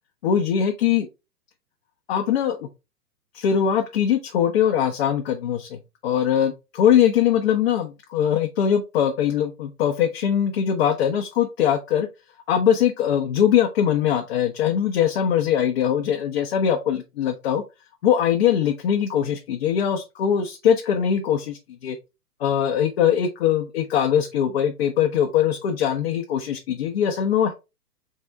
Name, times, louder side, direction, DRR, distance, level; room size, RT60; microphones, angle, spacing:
voice 1, 0.2-1.1 2.1-2.7 3.3-12.1 12.5-17.6 18.0-22.0 22.4-27.5, left 9 dB, 40° left, 3 dB, 0.7 m, -21 dB
4.0 x 3.7 x 3.2 m, 0.26 s
figure-of-eight pair, 125°, 47 cm